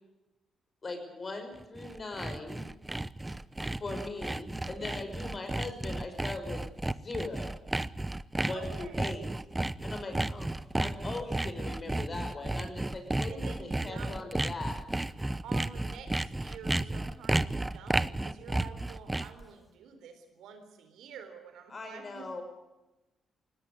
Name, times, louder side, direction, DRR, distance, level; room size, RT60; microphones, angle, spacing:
voice 1, 0.8-2.7 3.7-6.6 6.9-7.5 8.4-9.3 9.8-10.5 10.8-14.8 21.7-22.4, left 3 dB, 35° left, 6 dB, 5.9 m, -40 dB
Sawing, 1.6-19.4, right 2 dB, 15° right, 0.8 m, -33 dB
voice 2, 4.8-5.1 8.5-9.2 13.3-14.3 15.4-22.3, right 6 dB, 85° right, 8 dB, 3.9 m, -48 dB
19.0 x 17.0 x 9.8 m, 1.0 s
cardioid pair, 80°, 0 cm